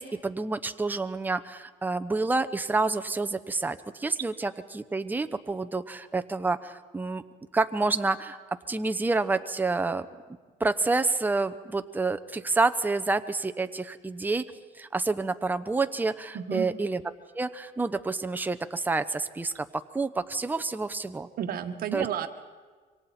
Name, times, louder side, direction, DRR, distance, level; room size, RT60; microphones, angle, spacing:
voice 1, 0.0-7.2 7.5-8.4 8.7-10.1 10.6-14.4 14.8-17.0 17.4-21.3 21.9-22.1, right 3 dB, 10° right, 10 dB, 0.8 m, -28 dB
voice 2, 16.3-16.7 21.4-22.3, right 9 dB, 60° right, 7 dB, 1.6 m, -31 dB
26.5 x 24.5 x 4.3 m, 1.5 s
cardioid pair, 110°, 17 cm